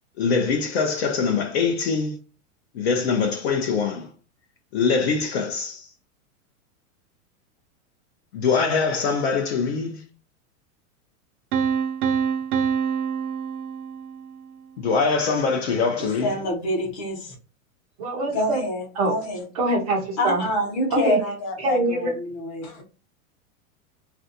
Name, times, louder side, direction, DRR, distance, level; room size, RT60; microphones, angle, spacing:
voice 1, 0.2-2.2 2.7-4.1 4.7-5.8 8.3-10.0 14.8-16.3, left 5 dB, 50° left, 0.5 m, -23 dB
Piano, 11.5-14.4, right 7 dB, 90° right, 0.6 m, -25 dB
voice 2, 16.0-17.3 18.3-19.4 20.2-22.8, left 1 dB, 30° left, 0.9 m, -27 dB
voice 3, 18.0-18.6 19.0-19.1 19.6-20.4 20.9-21.2 21.6-22.1, right 2 dB, 30° right, 0.4 m, -24 dB
3.3 x 2.5 x 2.6 m
supercardioid pair, 170°, 43 cm